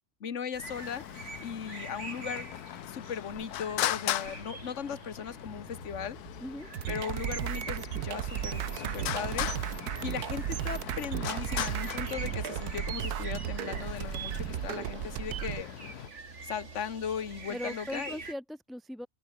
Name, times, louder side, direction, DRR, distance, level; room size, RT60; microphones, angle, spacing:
voice 1, 0.2-1.1 1.4-2.5 2.9-6.2 6.9-9.5 10.0-15.7 16.4-18.2, left 7 dB, 50° left, 1.7 m, -38 dB
sound 1, 0.5-18.3, right 3 dB, 50° right, 3.0 m, -46 dB
Traffic noise roadway noise, 0.6-16.1, left 13 dB, 90° left, 1.2 m, -39 dB
sound 2, 6.7-15.6, right 12 dB, 85° right, 1.3 m, -35 dB
voice 2, 17.5-19.1, equal, ahead, 0.7 m, -39 dB
open air
omnidirectional pair, 1.6 m